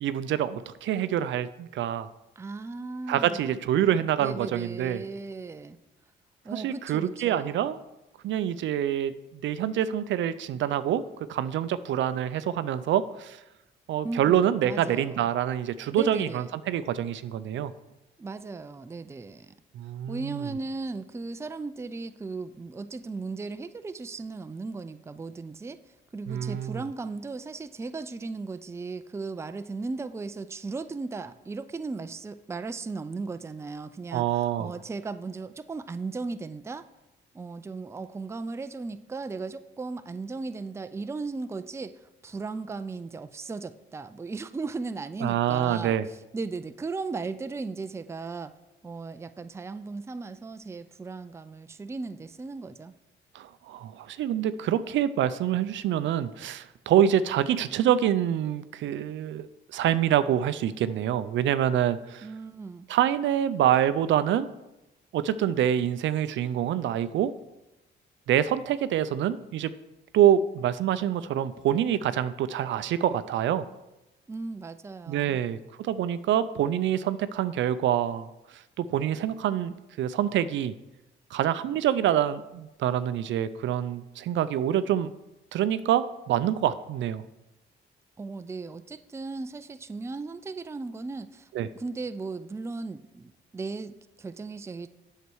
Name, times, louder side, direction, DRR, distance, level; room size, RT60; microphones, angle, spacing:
voice 1, 0.0-2.1 3.1-5.0 6.5-7.8 8.2-11.0 11.3-13.4 13.9-17.7 19.7-20.4 26.3-26.8 34.1-34.7 45.2-46.1 53.3-62.3 62.9-64.5 65.1-67.3 68.3-69.7 70.1-73.7 75.1-80.7 81.3-85.1 85.5-87.2 91.5-91.7, right 10 dB, 70° right, 14 dB, 0.5 m, -26 dB
voice 2, 2.4-3.5 4.2-5.8 6.4-7.6 14.0-15.2 15.9-16.5 18.2-19.5 20.1-25.8 26.1-36.9 37.3-48.5 48.8-52.9 62.2-62.9 74.3-75.4 88.2-91.5 91.7-94.9, right 3 dB, 15° right, 11 dB, 0.4 m, -36 dB
8.1 x 6.6 x 4.6 m, 0.97 s
cardioid pair, 90°, 20 cm